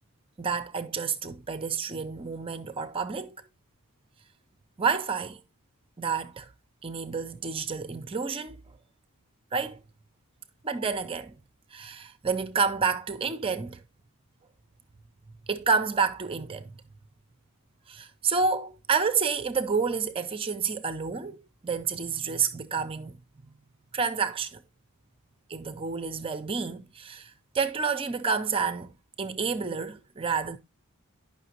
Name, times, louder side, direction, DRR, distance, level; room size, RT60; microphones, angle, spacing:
voice 1, 0.4-3.3 4.8-5.4 6.0-6.5 6.8-8.6 9.5-9.8 10.6-11.3 11.7-13.8 15.5-16.7 17.9-23.1 23.4-23.5 23.9-24.6 25.5-30.6, right 5 dB, 25° right, 0.5 m, -29 dB
10.0 x 5.7 x 2.8 m
head